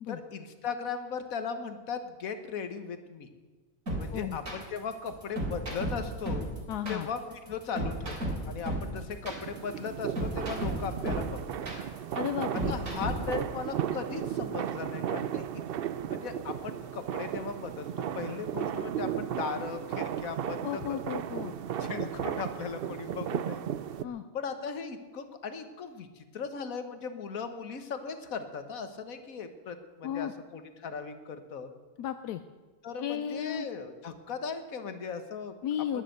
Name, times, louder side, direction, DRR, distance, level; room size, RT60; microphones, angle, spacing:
voice 1, 0.1-3.3 4.0-6.5 6.9-11.7 12.7-15.4 16.0-21.3 21.8-23.6 24.3-31.7 32.8-35.5 35.9-36.0, left 5 dB, 65° left, 8 dB, 1.7 m, -38 dB
sound 1, 3.9-13.4, right 1 dB, 55° right, 4.1 m, -33 dB
voice 2, 6.7-7.1 12.1-12.8 20.6-21.6 21.8-22.1 24.0-24.2 30.0-30.3 32.0-32.4 33.0-33.7 35.6-36.0, left 10 dB, 85° left, 10 dB, 1.2 m, -34 dB
sound 2, 9.3-24.1, right 9 dB, 80° right, 0.5 m, -35 dB
20.5 x 7.5 x 7.9 m, 1.3 s
omnidirectional pair, 1.6 m